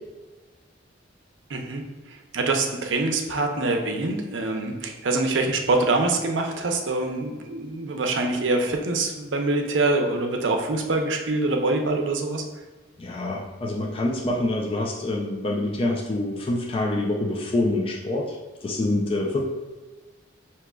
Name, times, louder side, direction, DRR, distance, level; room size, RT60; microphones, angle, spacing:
voice 1, 1.5-1.8 2.3-12.4, right 2 dB, 70° right, 3 dB, 0.6 m, -24 dB
voice 2, 13.0-18.4 18.6-19.4, left 2 dB, 30° left, -2 dB, 0.4 m, -26 dB
6.0 x 2.9 x 2.3 m, 1.3 s
head